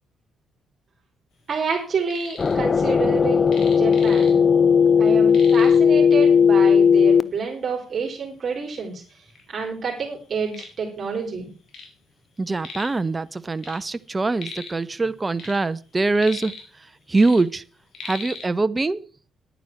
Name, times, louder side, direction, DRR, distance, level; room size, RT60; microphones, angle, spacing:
voice 1, 1.5-4.4 5.0-9.0 9.5-11.5, right 5 dB, 45° right, 3.7 m, -29 dB
sound 1, 1.8-2.6 2.9-4.6 4.9-5.0 5.3-5.9 6.7-6.8 7.4-7.5 8.2-8.3 8.6-9.4 9.9-12.0 12.2-13.0 13.3-14.9 15.2-16.8 17.1-18.5, left 4 dB, 65° left, 4.1 m, -40 dB
sound 2, 2.4-7.2, left 6 dB, 35° left, 0.6 m, -16 dB
voice 2, 12.4-16.5 17.1-17.6 18.0-19.1, right 3 dB, 20° right, 0.7 m, -23 dB
10.5 x 9.3 x 5.9 m
cardioid pair, 90°, 0 cm